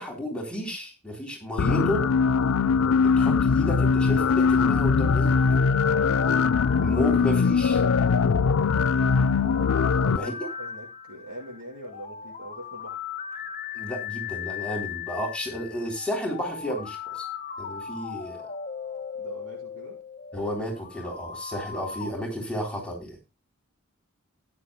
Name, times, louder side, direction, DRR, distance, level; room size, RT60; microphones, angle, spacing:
voice 1, 0.0-2.0 3.0-5.4 6.8-7.8 10.2-10.3 13.7-17.2 17.6-18.5 20.3-23.2, equal, 5° left, -1 dB, 3.6 m, -32 dB
sound 1, 1.6-10.2, left 5 dB, 75° left, 0.4 m, -21 dB
sound 2, 5.0-22.1, left 7 dB, 40° left, 0.9 m, -38 dB
voice 2, 6.0-6.3 9.8-13.0 19.2-20.0, right 1 dB, 90° right, -2 dB, 7.5 m, -42 dB
16.0 x 9.8 x 2.3 m, 0.26 s
head